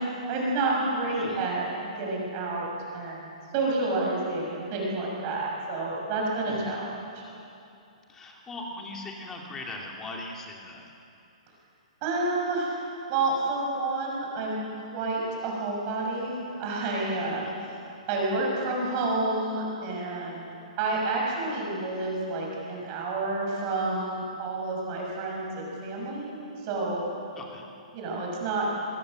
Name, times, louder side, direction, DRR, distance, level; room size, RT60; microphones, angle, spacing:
voice 1, 0.3-7.2 12.0-12.7 13.1-14.6 14.9-17.8 18.1-20.5 20.8-26.4 26.6-27.0 27.9-28.7, right 2 dB, 25° right, -2 dB, 6.3 m, -29 dB
voice 2, 1.1-1.4 6.5-6.8 8.1-10.8 17.4-17.6 27.3-27.7, left 2 dB, 10° left, 0 dB, 2.5 m, -39 dB
26.0 x 22.0 x 7.8 m, 2.7 s
hypercardioid pair, 170°, 4 cm